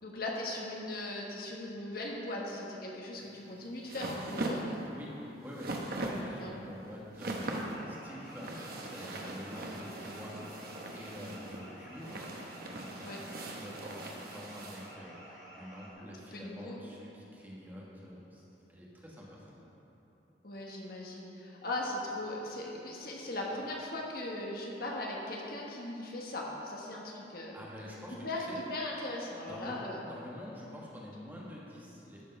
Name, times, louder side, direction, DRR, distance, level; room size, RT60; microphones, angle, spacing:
voice 1, 0.0-4.8 6.4-6.5 13.0-13.2 16.0-16.8 20.4-27.6 28.2-30.0, left 1 dB, 55° left, -2 dB, 1.3 m, -39 dB
sound 1, 3.2-14.9, right 1 dB, 55° right, 1.0 m, -40 dB
voice 2, 5.4-12.3 12.6-13.3 13.5-18.4 18.7-19.7 27.5-28.2 28.5-28.6 29.4-32.2, equal, 10° right, -5 dB, 1.5 m, -47 dB
sound 2, 7.2-15.9, right 1 dB, 20° left, 2.2 m, -51 dB
13.0 x 5.3 x 5.4 m, 3.0 s
head